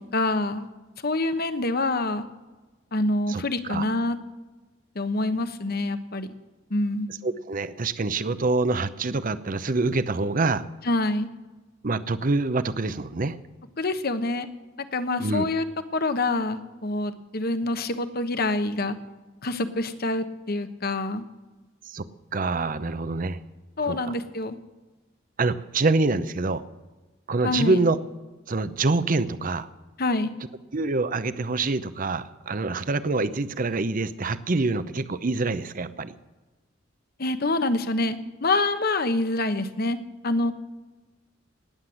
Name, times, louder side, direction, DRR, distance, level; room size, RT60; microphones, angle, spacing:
voice 1, 0.1-0.7 1.0-2.3 2.9-4.2 4.9-6.3 6.7-7.1 10.8-11.3 13.8-14.5 14.9-15.6 15.9-19.0 19.4-21.2 23.8-24.6 27.4-27.8 30.0-30.3 37.2-40.0 40.2-40.5, left 2 dB, 55° left, 10 dB, 1.1 m, -26 dB
voice 2, 3.3-3.8 7.2-10.6 11.8-13.4 15.2-15.5 21.9-22.1 22.3-23.4 23.9-24.1 25.4-26.6 27.3-28.0 28.5-29.7 30.7-36.1, right 3 dB, 45° right, 13 dB, 0.7 m, -26 dB
19.0 x 7.3 x 8.0 m, 1.2 s
head